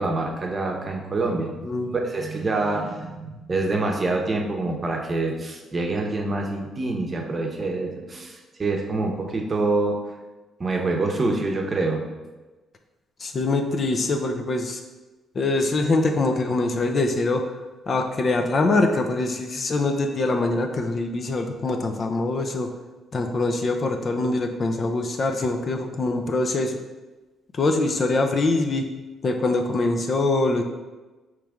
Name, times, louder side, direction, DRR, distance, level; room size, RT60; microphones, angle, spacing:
voice 1, 0.0-1.6 2.0-10.0 10.6-12.1, right 2 dB, 35° right, 1 dB, 0.8 m, -26 dB
voice 2, 13.2-14.8 15.3-17.4 17.9-22.7 23.1-26.8 27.5-28.9 29.2-30.6, left 2 dB, 45° left, 4 dB, 0.5 m, -23 dB
4.8 x 3.1 x 3.5 m, 1.2 s
cardioid pair, 90°, 0 cm